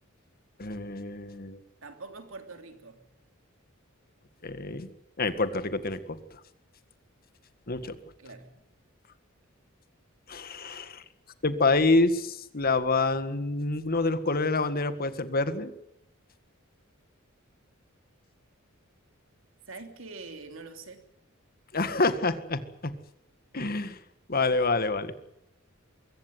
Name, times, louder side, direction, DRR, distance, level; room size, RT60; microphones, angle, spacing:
voice 1, 0.6-1.6 4.4-4.9 5.2-6.2 7.7-8.0 10.3-11.0 11.4-15.7 21.7-22.6 23.5-24.0 24.3-25.1, left 3 dB, 45° left, 12 dB, 1.8 m, -27 dB
voice 2, 1.8-3.0 8.2-8.5 19.7-21.1, right 3 dB, 70° right, 7 dB, 3.1 m, -44 dB
23.0 x 16.5 x 9.4 m, 0.79 s
head